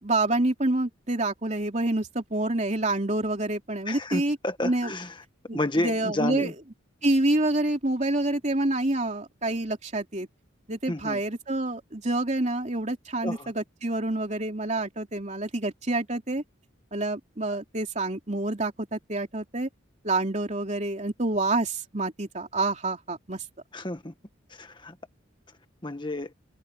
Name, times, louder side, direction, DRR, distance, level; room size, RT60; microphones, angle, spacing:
voice 1, 0.0-4.4 4.6-4.9 5.5-6.5 7.0-10.3 10.7-16.4 16.9-19.7 20.0-23.4, right 2 dB, 35° right, 3.2 m, -27 dB
voice 2, 3.8-5.2 5.5-6.5 10.9-11.2 13.2-13.5 23.7-24.1 24.5-25.0 25.8-26.3, left 1 dB, 25° left, 1.7 m, -31 dB
open air
head